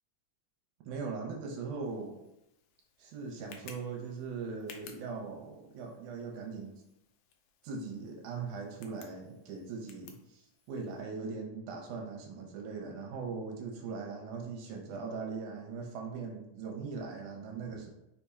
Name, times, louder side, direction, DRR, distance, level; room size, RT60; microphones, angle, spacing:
voice 1, 0.9-2.2 3.0-6.7 7.6-10.4 10.7-17.9, right 4 dB, 75° right, 2 dB, 1.9 m, -40 dB
Tick, 1.8-11.0, left 6 dB, 90° left, 1.6 m, -57 dB
4.8 x 4.2 x 2.3 m, 0.84 s
omnidirectional pair, 3.9 m